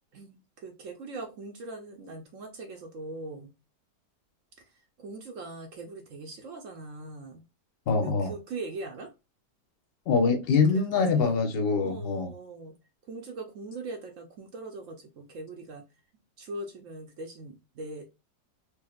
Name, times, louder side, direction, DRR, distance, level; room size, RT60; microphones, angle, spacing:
voice 1, 0.1-3.5 4.6-7.4 8.0-9.1 10.7-11.4 11.7-12.7 13.1-15.8 16.4-18.1, right 2 dB, 60° right, 0.9 m, -41 dB
voice 2, 7.9-8.3 10.1-12.3, left 4 dB, 50° left, 0.7 m, -24 dB
4.4 x 2.8 x 2.3 m
omnidirectional pair, 1.8 m